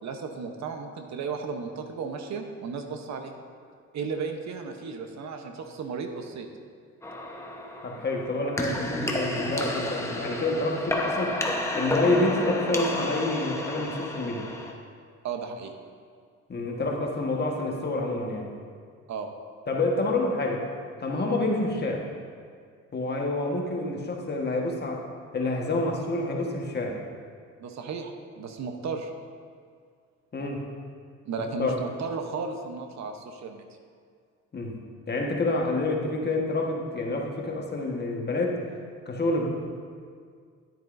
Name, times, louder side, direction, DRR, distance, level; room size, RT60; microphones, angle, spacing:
voice 1, 0.0-3.3 3.9-6.5 15.2-15.7 19.1-19.3 27.6-29.1 31.3-33.6, right 5 dB, 65° right, 5 dB, 0.8 m, -34 dB
sound 1, 7.0-14.7, left 1 dB, 10° left, 0.9 m, -31 dB
voice 2, 7.8-11.3 11.8-14.4 16.5-18.5 19.7-20.7 21.0-22.0 22.9-25.0 25.3-27.0 30.3-30.6 31.6-31.8 34.5-34.8 35.1-38.6 39.0-39.5, left 2 dB, 35° left, 0 dB, 1.3 m, -28 dB
10.5 x 9.2 x 2.6 m, 2.1 s
cardioid pair, 90°, 30 cm